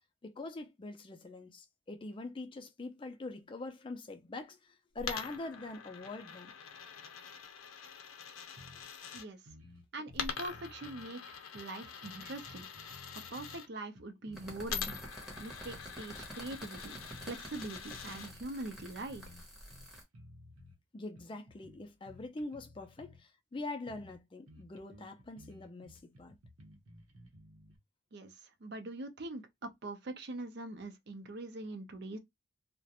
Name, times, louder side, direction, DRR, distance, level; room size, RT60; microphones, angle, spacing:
voice 1, 0.2-6.5 20.9-26.4, left 2 dB, 25° left, 0.3 m, -44 dB
Coin (dropping), 5.0-9.3 10.1-13.7 14.7-18.3, left 6 dB, 85° left, 0.5 m, -44 dB
sound 1, 8.6-8.9 9.2-9.3 9.5-11.1 11.5-13.6 14.0-15.9 16.2-16.4 16.8-18.5 18.8-19.4 19.7-20.8 21.2-23.2 23.6-23.7 23.9-24.2 24.5-27.8, left 1 dB, 85° right, 0.8 m, -56 dB
voice 2, 9.9-12.7 13.3-15.0 15.4-19.2 28.1-32.2, right 2 dB, 50° right, 0.5 m, -43 dB
sound 2, 14.3-20.0, right 1 dB, 5° right, 0.7 m, -49 dB
2.4 x 2.1 x 2.8 m
head